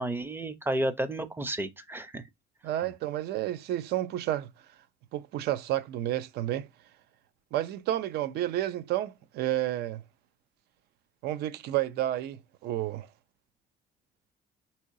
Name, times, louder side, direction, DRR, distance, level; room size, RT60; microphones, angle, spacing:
voice 1, 0.0-2.2, right 1 dB, 10° right, 0.5 m, -31 dB
voice 2, 2.6-4.5 5.1-6.7 7.5-10.0 11.2-12.4 12.6-13.1, right 13 dB, 75° right, 0.4 m, -30 dB
3.8 x 2.8 x 2.5 m
cardioid pair, 110°, 17 cm